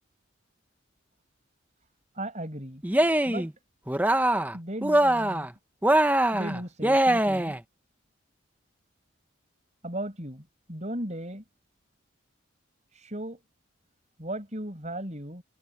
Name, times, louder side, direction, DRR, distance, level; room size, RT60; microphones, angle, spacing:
voice 1, 2.1-2.8 3.2-3.5 4.5-5.5 6.3-7.6 9.8-11.4 12.9-13.4 14.2-15.4, right 1 dB, 35° right, 6.1 m, -36 dB
Cheering, 2.8-3.5 3.9-4.6 4.8-5.5 5.8-7.6, right 1 dB, 10° right, 0.7 m, -23 dB
head